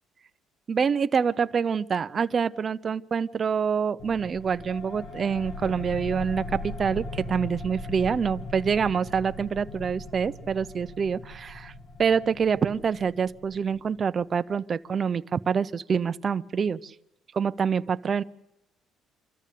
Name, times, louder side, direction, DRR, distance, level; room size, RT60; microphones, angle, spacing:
voice 1, 0.7-11.7 12.0-16.9 17.3-18.2, right 6 dB, 30° right, 12 dB, 0.7 m, -26 dB
sound 1, 4.0-14.2, left 2 dB, 55° left, 2.3 m, -39 dB
26.5 x 14.0 x 8.4 m, 0.90 s
cardioid pair, 145°, 0 cm